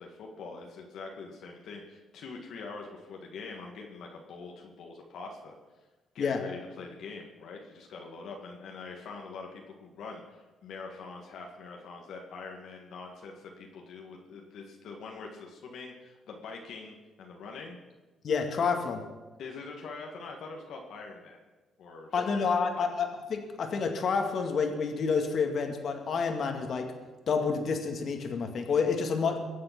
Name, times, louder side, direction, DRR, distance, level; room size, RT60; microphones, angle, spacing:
voice 1, 0.0-5.5 6.1-17.8 19.4-21.4 21.8-22.1 22.8-22.9, left 4 dB, 75° left, 1 dB, 1.9 m, -44 dB
voice 2, 18.2-19.0 22.1-26.9 27.3-29.4, left 5 dB, 55° left, 4 dB, 2.1 m, -29 dB
22.5 x 7.6 x 6.0 m, 1.2 s
cardioid pair, 90°, 0 cm